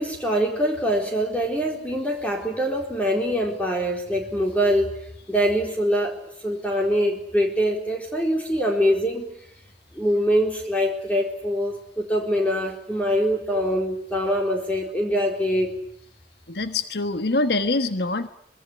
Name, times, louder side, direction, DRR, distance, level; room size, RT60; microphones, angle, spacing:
voice 1, 0.0-4.9 5.3-6.2 6.4-9.3 9.9-15.7, equal, 10° left, 1 dB, 4.2 m, -24 dB
voice 2, 16.5-18.3, left 2 dB, 70° left, 10 dB, 1.4 m, -24 dB
25.0 x 24.0 x 9.7 m, 0.70 s
head